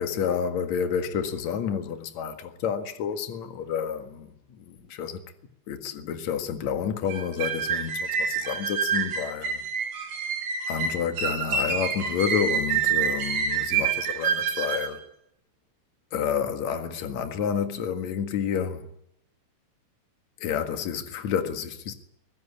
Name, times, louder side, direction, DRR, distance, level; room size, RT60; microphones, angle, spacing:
voice 1, 0.0-5.2 5.7-9.6 10.7-15.0 16.1-18.9 20.4-21.9, left 7 dB, 55° left, 2.2 m, -29 dB
sound 1, 7.1-14.9, right 6 dB, 55° right, 2.9 m, -27 dB
23.5 x 16.5 x 9.9 m
omnidirectional pair, 5.3 m